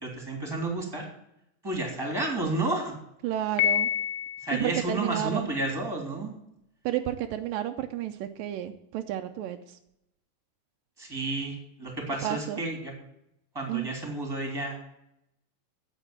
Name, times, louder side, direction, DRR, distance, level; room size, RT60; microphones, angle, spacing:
voice 1, 0.0-1.0 1.6-3.0 4.4-6.3 11.0-12.9 13.5-14.9, right 2 dB, 5° right, 1 dB, 2.7 m, -31 dB
voice 2, 3.2-3.9 4.5-5.5 6.9-9.8 12.2-12.6 13.7-13.9, right 12 dB, 85° right, 7 dB, 2.4 m, -31 dB
Piano, 3.6-4.7, left 10 dB, 75° left, 2.0 m, -27 dB
9.2 x 8.3 x 8.7 m, 0.81 s
omnidirectional pair, 3.9 m